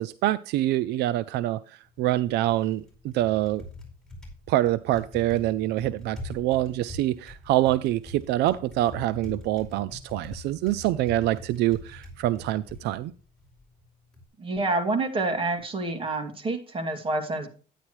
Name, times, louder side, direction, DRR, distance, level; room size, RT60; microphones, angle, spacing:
voice 1, 0.0-3.6 4.5-13.1, right 14 dB, 80° right, 16 dB, 0.4 m, -25 dB
Typing, 1.8-14.3, left 2 dB, 5° left, 4.8 m, -44 dB
voice 2, 14.4-17.5, right 2 dB, 30° right, 6 dB, 2.4 m, -28 dB
10.0 x 9.6 x 3.1 m, 0.39 s
cardioid pair, 110°, 17 cm